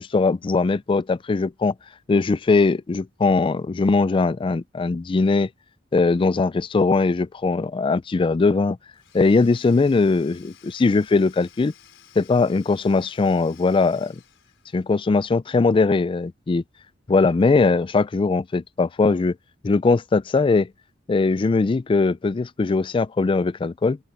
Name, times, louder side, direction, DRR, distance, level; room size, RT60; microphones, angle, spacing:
voice 1, 0.0-1.7 2.1-5.5 5.9-8.8 9.1-10.4 10.7-11.7 12.2-14.2 14.7-16.6 17.1-19.4 19.6-20.7 21.1-24.0, left 3 dB, 25° left, 0.3 m, -20 dB
Domestic sounds home sounds / Tools, 8.9-15.0, left 10 dB, 70° left, 6.4 m, -53 dB
open air
head